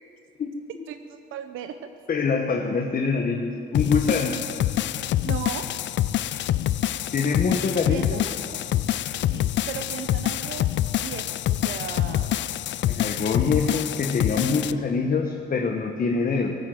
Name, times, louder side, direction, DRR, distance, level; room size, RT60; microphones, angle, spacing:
voice 1, 0.9-1.9 5.2-5.7 7.9-8.6 9.3-12.5, right 9 dB, 85° right, 8 dB, 0.8 m, -37 dB
voice 2, 2.1-4.4 7.1-8.2 12.9-16.6, left 4 dB, 45° left, 2 dB, 1.3 m, -25 dB
sound 1, 3.7-14.7, left 13 dB, 65° left, 0.4 m, -26 dB
18.5 x 9.0 x 7.8 m, 2.6 s
cardioid pair, 90°, 20 cm